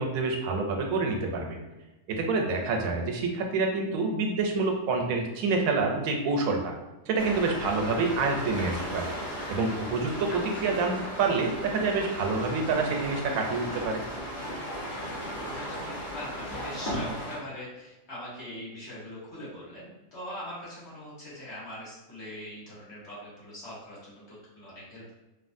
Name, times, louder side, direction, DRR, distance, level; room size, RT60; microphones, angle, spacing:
voice 1, 0.0-1.6 2.1-6.7 7.1-9.1 9.5-14.0, right 3 dB, 90° right, 2 dB, 1.0 m, -27 dB
sound 1, 7.2-17.4, equal, 40° left, 1.0 m, -36 dB
voice 2, 14.9-25.1, left 1 dB, 55° left, -9 dB, 1.5 m, -42 dB
3.1 x 2.4 x 2.5 m, 1.0 s
omnidirectional pair, 1.4 m